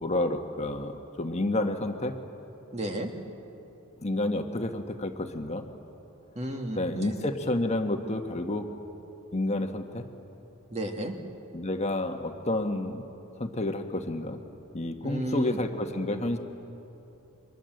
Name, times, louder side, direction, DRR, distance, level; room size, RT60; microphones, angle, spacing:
voice 1, 0.0-2.2 4.0-5.6 6.8-8.7 9.3-10.1 11.5-13.1 13.4-14.4 14.7-16.4, left 1 dB, 30° left, 5 dB, 1.4 m, -30 dB
voice 2, 2.7-3.1 6.4-7.3 10.7-11.1 15.0-15.6, right 1 dB, 30° right, 3 dB, 2.3 m, -33 dB
30.0 x 24.5 x 7.9 m, 2.9 s
head